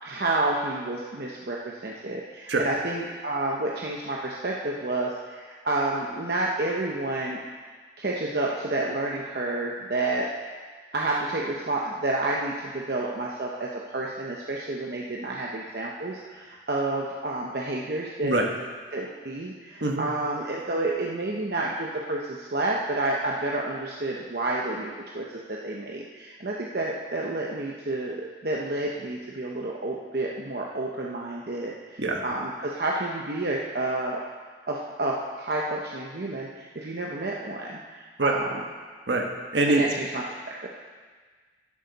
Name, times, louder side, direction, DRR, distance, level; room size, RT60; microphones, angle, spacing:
voice 1, 0.0-7.4 8.0-10.3 10.9-18.4 18.9-34.3 34.7-38.6 39.7-40.7, right 2 dB, 60° right, -2 dB, 0.9 m, -30 dB
voice 2, 39.1-39.8, right 2 dB, 75° right, 1 dB, 1.4 m, -24 dB
11.0 x 10.5 x 4.1 m, 1.5 s
head